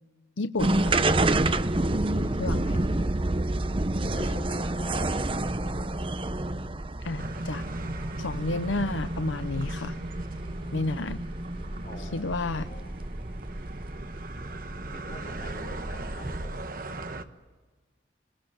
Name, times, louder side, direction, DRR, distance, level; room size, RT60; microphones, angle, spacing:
voice 1, 0.4-1.0 2.4-2.8 7.0-7.6 8.2-10.0 10.7-11.2 12.0-12.7, left 3 dB, 90° left, 11 dB, 0.7 m, -31 dB
sound 1, 0.6-16.8, right 2 dB, 30° right, 0.8 m, -29 dB
voice 2, 2.1-3.2 4.1-5.0 11.8-12.9 14.9-16.8, left 1 dB, 50° left, 4 dB, 3.6 m, -46 dB
sound 2, 7.2-17.2, right 2 dB, 50° right, 1.3 m, -38 dB
26.5 x 21.5 x 9.0 m, 1.3 s
head